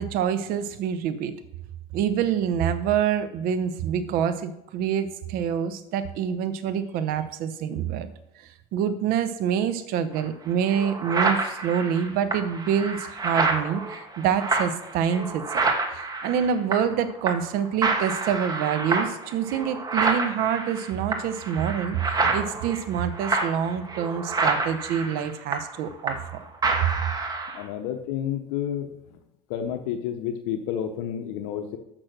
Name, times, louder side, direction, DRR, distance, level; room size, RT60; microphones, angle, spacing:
voice 1, 0.0-1.3 1.9-8.1 8.4-15.6 15.9-26.2 26.8-26.9, right 8 dB, 65° right, 11 dB, 0.9 m, -26 dB
sound 1, 10.2-10.3 10.7-17.0 17.3-17.5 17.8-26.3 26.6-27.6, right 3 dB, 25° right, 1.3 m, -28 dB
voice 2, 27.5-28.9 29.5-31.8, left 9 dB, 80° left, 6 dB, 0.8 m, -30 dB
6.2 x 6.1 x 6.5 m, 0.87 s
supercardioid pair, 105°, 16 cm